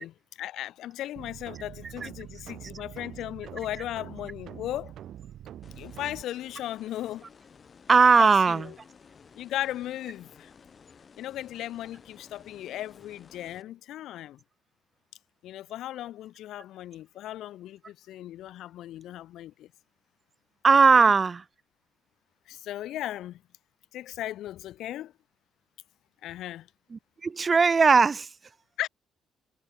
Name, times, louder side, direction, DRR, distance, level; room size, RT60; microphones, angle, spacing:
voice 1, 0.0-5.0 5.7-7.3 8.2-8.8 9.4-10.5 11.2-14.4 15.4-19.7 20.9-21.1 22.5-23.4 23.9-25.1 26.2-26.7 28.8-28.9, left 13 dB, 70° left, 2.4 m, -37 dB
sound 1, 1.2-6.2, right 11 dB, 65° right, 3.8 m, -44 dB
sound 2, 5.6-13.6, left 6 dB, 45° left, 7.0 m, -54 dB
voice 2, 7.9-8.7 20.6-21.4 26.9-28.3, right 5 dB, 40° right, 0.8 m, -19 dB
hypercardioid pair, 45°, 0 cm